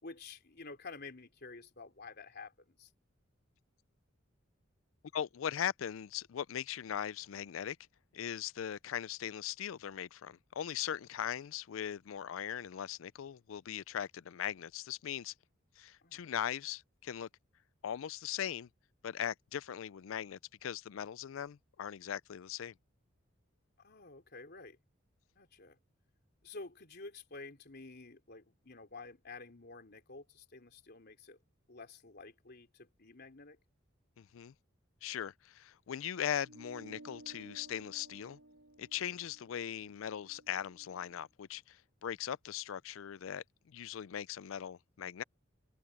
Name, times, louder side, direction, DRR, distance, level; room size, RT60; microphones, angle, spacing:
voice 1, 0.0-2.9 16.0-16.2 23.8-24.8 25.4-25.8 26.4-31.4 31.7-33.6, left 3 dB, 55° left, 3.4 m, -50 dB
voice 2, 5.1-7.8 8.1-15.3 15.8-17.3 17.8-18.7 19.0-22.7 34.2-34.5 35.0-38.4 38.8-45.2, left 9 dB, 80° left, 0.4 m, -39 dB
sound 1, 36.4-41.2, right 2 dB, 75° right, 4.4 m, -57 dB
open air
head